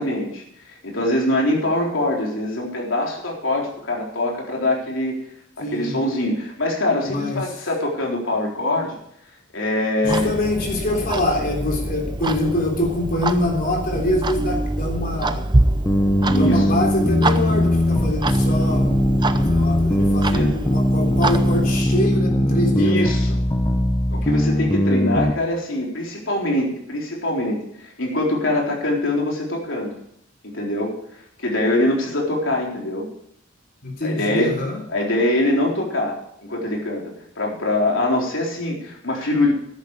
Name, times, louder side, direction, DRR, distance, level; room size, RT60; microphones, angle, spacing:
voice 1, 0.0-5.2 5.6-9.0 9.5-10.3 16.2-16.6 20.3-20.6 22.7-23.4 24.1-29.9 30.4-30.9 31.4-33.1 34.0-34.5 34.9-36.2 36.5-37.0 37.4-39.5, left 1 dB, 70° left, -1 dB, 4.0 m, -23 dB
voice 2, 5.6-6.0 7.0-7.4 10.0-15.4 16.4-18.9 19.2-23.0 33.8-34.8, left 1 dB, 50° left, 1 dB, 3.6 m, -24 dB
Clock, 10.1-21.8, right 2 dB, 25° right, 0.7 m, -26 dB
sound 1, 15.9-25.3, left 1 dB, 15° left, 0.9 m, -20 dB
14.0 x 10.5 x 4.8 m, 0.73 s
head